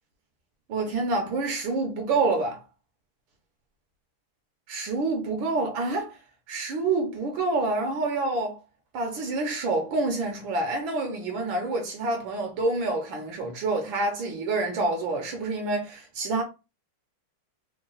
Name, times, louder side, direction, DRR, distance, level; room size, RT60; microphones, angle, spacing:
voice 1, 0.7-2.6 4.7-6.2 6.5-8.5 8.9-16.4, right 3 dB, 70° right, 1.4 m, -27 dB
3.9 x 2.1 x 3.8 m
omnidirectional pair, 2.4 m